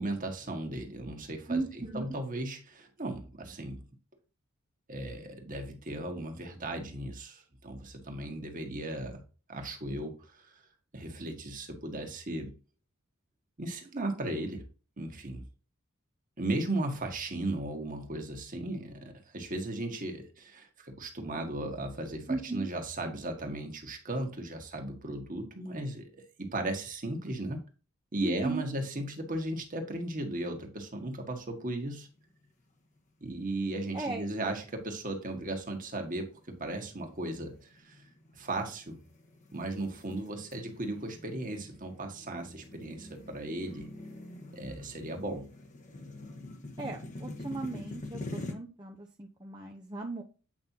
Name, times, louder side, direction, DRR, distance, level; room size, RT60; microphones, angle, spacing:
voice 1, 0.0-1.6 1.9-3.8 4.9-9.2 9.5-10.6 10.9-12.6 13.6-14.7 15.0-15.4 16.4-27.6 28.1-32.1 33.2-38.0 38.3-39.0 39.5-43.9 44.5-45.5, right 1 dB, 40° right, 1.6 m, -36 dB
voice 2, 1.5-2.1 22.3-22.7 28.2-28.7 33.9-34.2 46.8-50.2, right 3 dB, 20° right, 0.7 m, -36 dB
sound 1, 32.1-32.6 33.0-33.1 33.8-34.3 34.8-35.1 35.7-48.5, left 2 dB, 35° left, 1.2 m, -45 dB
8.7 x 5.4 x 2.8 m
head